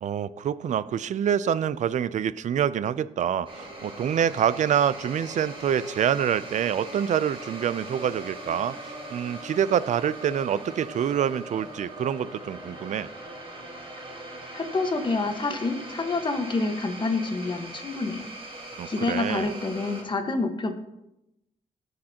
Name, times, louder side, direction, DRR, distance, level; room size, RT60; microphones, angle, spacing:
voice 1, 0.0-13.1 18.8-19.5, right 9 dB, 60° right, 17 dB, 0.5 m, -26 dB
sound 1, 3.4-20.0, right 1 dB, 40° right, 4.1 m, -40 dB
voice 2, 14.5-18.3 18.9-20.7, left 3 dB, 35° left, 5 dB, 1.4 m, -28 dB
19.5 x 6.6 x 2.9 m, 0.90 s
cardioid pair, 90°, 14 cm